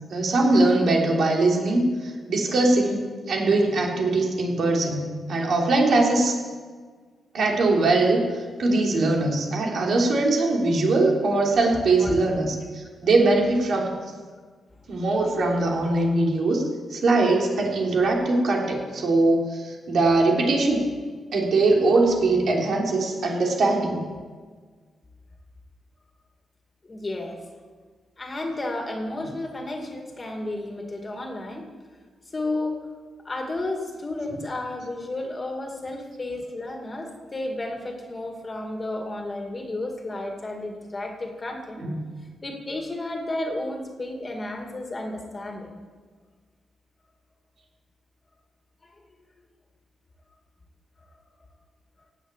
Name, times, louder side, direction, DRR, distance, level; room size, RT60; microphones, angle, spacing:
voice 1, 0.1-6.3 7.3-8.2 8.6-13.9 14.9-16.6 16.9-20.9 21.3-24.0 41.8-42.0, right 2 dB, 65° right, 0 dB, 3.4 m, -21 dB
voice 2, 11.5-12.2 26.8-27.5 28.2-31.6 32.3-32.8 33.2-41.8 42.4-45.7 48.8-49.0, left 2 dB, 25° left, 3 dB, 2.4 m, -32 dB
17.5 x 8.4 x 9.0 m, 1.5 s
wide cardioid pair, 135°, 0 cm